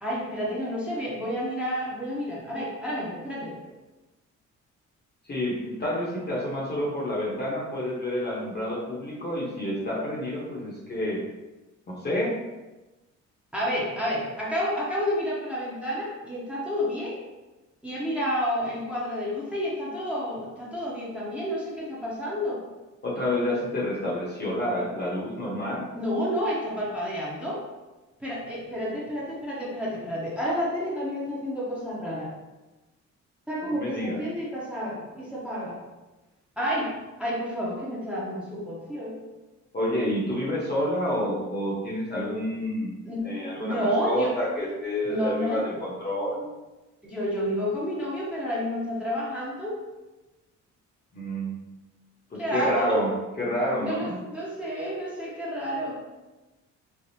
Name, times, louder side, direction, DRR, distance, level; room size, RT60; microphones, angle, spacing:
voice 1, 0.0-3.5 13.5-17.2 17.8-22.6 26.0-27.6 28.2-32.3 33.5-35.8 36.6-36.9 37.2-39.2 43.0-43.3 43.6-44.4 45.0-45.7 47.0-49.8 52.4-53.0 53.8-56.0, equal, 5° right, -7 dB, 0.8 m, -30 dB
voice 2, 5.2-11.2 11.9-12.4 23.0-25.9 33.7-34.2 39.7-42.9 43.2-46.5 51.1-51.6 52.3-53.1 53.4-54.2, left 1 dB, 35° left, -4 dB, 0.9 m, -29 dB
3.4 x 2.0 x 2.6 m, 1.1 s
cardioid pair, 90°, 30 cm